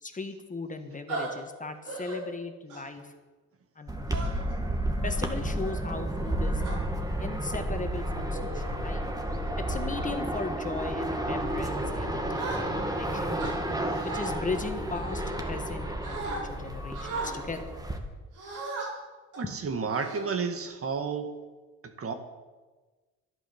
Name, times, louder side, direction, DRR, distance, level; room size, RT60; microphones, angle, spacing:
voice 1, 0.0-3.1 3.7-4.3 5.0-6.6 7.2-9.0 9.6-13.4 14.0-17.6, left 3 dB, 25° left, 7 dB, 1.6 m, -37 dB
sound 1, 1.1-1.3 1.9-2.2 2.7-3.0 4.1-4.5 5.2-5.5 6.2-6.8 7.6-7.8 8.3-8.7 9.2-9.4 9.9-10.2 10.7-11.0 12.3-13.0 13.4-14.3 14.9-15.7 16.0-16.4 16.9-17.3 18.3-18.9 19.3-19.5 19.9-20.6, right 3 dB, 80° right, 4.9 m, -38 dB
sound 2, 3.9-18.0, right 1 dB, 10° right, 2.0 m, -31 dB
voice 2, 19.4-21.3 21.8-22.1, right 5 dB, 50° right, 7 dB, 1.8 m, -31 dB
11.5 x 11.5 x 7.2 m, 1.3 s
cardioid pair, 90°, 30 cm